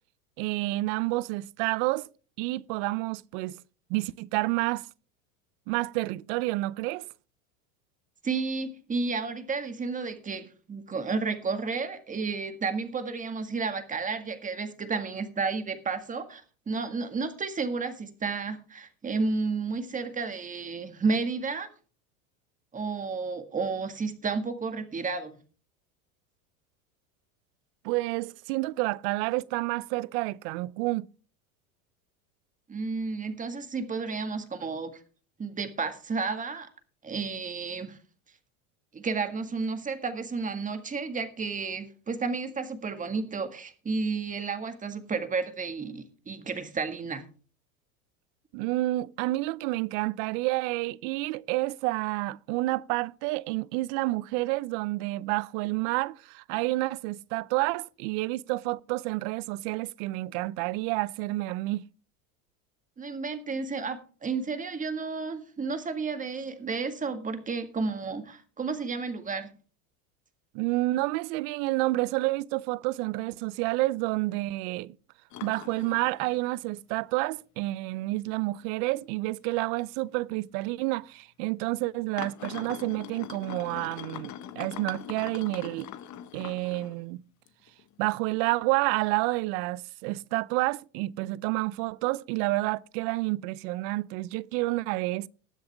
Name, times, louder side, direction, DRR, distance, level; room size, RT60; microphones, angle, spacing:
voice 1, 0.4-2.1 2.4-3.6 3.9-4.9 5.7-7.1 27.8-31.1 48.5-61.8 70.5-74.9 75.4-85.9 86.3-87.2 88.0-95.3, right 20 dB, 55° right, 0.6 m, -29 dB
voice 2, 8.2-21.7 22.7-25.4 32.7-35.0 35.4-36.7 37.0-38.0 38.9-47.3 63.0-69.5, right 4 dB, 20° right, 1.8 m, -32 dB
sound 1, 75.3-76.8 77.2-77.3 77.9-78.0 78.6-78.7 79.0-79.1 80.1-80.2 80.9-81.0 82.2-87.0 87.5-88.2 88.6-88.7, left 10 dB, 40° left, 1.3 m, -42 dB
20.0 x 7.8 x 3.4 m
supercardioid pair, 105°, 42 cm